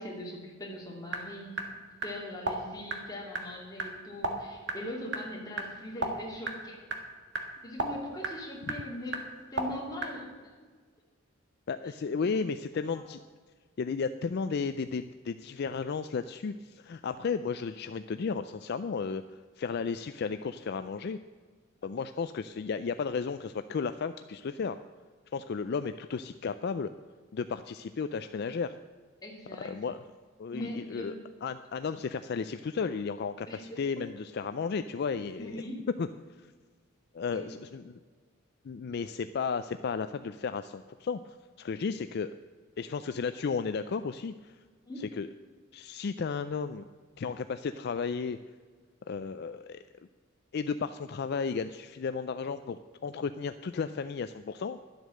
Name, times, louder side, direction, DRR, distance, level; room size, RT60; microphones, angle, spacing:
voice 1, 0.0-1.6 2.0-6.8 7.6-9.2 9.5-10.5 11.8-11.9 12.2-12.3 12.9-13.0 29.2-29.8 30.5-31.1 33.5-33.8 35.4-35.8 37.3-37.5 44.9-45.1, left 1 dB, 20° left, -3 dB, 2.7 m, -41 dB
sound 1, 1.1-10.1, right 2 dB, 60° right, 1.6 m, -37 dB
voice 2, 11.7-13.2 13.8-19.2 19.6-21.2 21.8-24.8 25.3-26.9 27.3-28.7 29.6-30.0 30.4-31.1 31.4-35.6 36.0-36.1 37.1-38.0 38.6-42.3 42.8-44.6 45.2-45.3 45.7-46.8 47.2-48.4 49.1-49.8 50.5-54.8, left 5 dB, 50° left, 10 dB, 0.4 m, -34 dB
12.0 x 8.0 x 6.5 m, 1.5 s
head